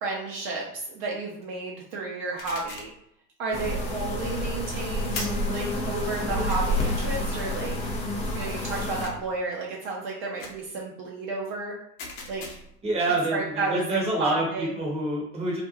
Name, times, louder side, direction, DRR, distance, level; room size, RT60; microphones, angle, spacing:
voice 1, 0.0-2.9 3.4-7.8 8.3-11.7 12.3-12.6 13.3-14.7, right 3 dB, 45° right, -3 dB, 0.7 m, -32 dB
sound 1, 2.4-3.0 5.1-5.5 6.5-6.6 9.0-9.4 10.4-10.7 12.0-12.8, left 3 dB, 45° left, 0.8 m, -39 dB
sound 2, 3.5-9.1, left 1 dB, 15° left, 0.4 m, -29 dB
voice 2, 12.8-15.6, right 2 dB, 10° right, -2 dB, 0.8 m, -27 dB
2.5 x 2.2 x 2.8 m, 0.71 s
hypercardioid pair, 85°, 49 cm